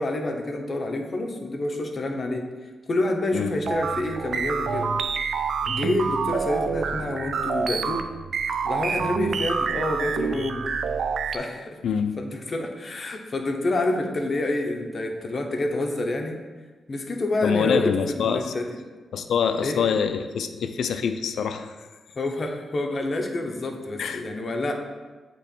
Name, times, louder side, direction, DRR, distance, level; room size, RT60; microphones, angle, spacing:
voice 1, 0.0-2.5 2.9-4.9 5.6-8.0 8.6-10.7 11.3-11.8 12.2-16.4 16.9-18.7 19.6-19.8 22.1-24.7, left 2 dB, 35° left, 3 dB, 0.7 m, -28 dB
sound 1, 3.7-11.4, right 5 dB, 65° right, 0.3 m, -27 dB
voice 2, 17.4-18.5 19.1-21.8 24.0-24.2, left 7 dB, 80° left, 8 dB, 0.4 m, -25 dB
7.6 x 3.0 x 4.3 m, 1.3 s
wide cardioid pair, 125°, 0 cm